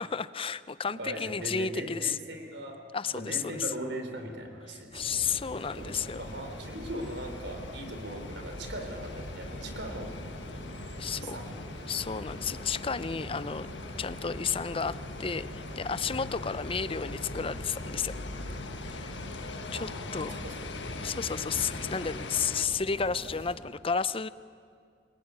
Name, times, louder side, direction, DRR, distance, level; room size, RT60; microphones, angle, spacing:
voice 1, 0.0-2.2 2.9-3.6 4.9-6.2 11.0-11.4 11.9-13.7 14.0-18.1 18.8-19.1 19.7-20.4 21.0-24.3, left 6 dB, 30° left, 16 dB, 0.6 m, -32 dB
voice 2, 0.8-2.7 3.1-5.3 5.8-10.1 11.1-11.5 19.7-20.6 20.9-21.0 21.4-21.5, right 1 dB, 75° right, 4 dB, 4.1 m, -40 dB
sound 1, 4.9-23.6, equal, 35° right, 3.3 m, -45 dB
sound 2, 5.2-22.7, left 2 dB, 80° left, 1.5 m, -41 dB
27.5 x 19.5 x 9.7 m, 2.2 s
head